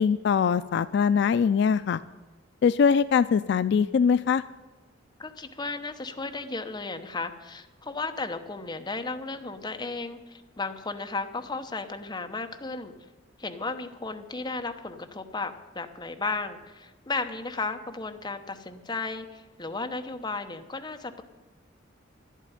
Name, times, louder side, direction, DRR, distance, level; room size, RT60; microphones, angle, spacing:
voice 1, 0.0-2.0 2.6-4.4, left 6 dB, 60° left, 14 dB, 0.3 m, -22 dB
voice 2, 5.2-12.9 13.4-21.2, left 3 dB, 20° left, 6 dB, 0.9 m, -34 dB
11.0 x 8.3 x 10.0 m, 1.2 s
head